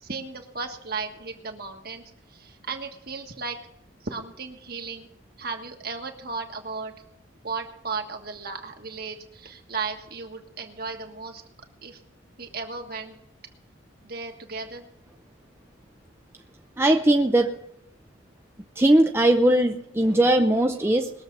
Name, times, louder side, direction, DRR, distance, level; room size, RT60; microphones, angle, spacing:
voice 1, 0.0-2.0 2.3-3.6 4.0-5.1 5.4-6.9 7.4-11.4 11.8-12.0 12.4-13.2 14.0-14.8, right 4 dB, 50° right, 4 dB, 1.6 m, -35 dB
voice 2, 16.8-17.6 18.8-21.1, right 1 dB, 10° right, 4 dB, 0.5 m, -19 dB
21.0 x 7.3 x 5.4 m, 0.78 s
head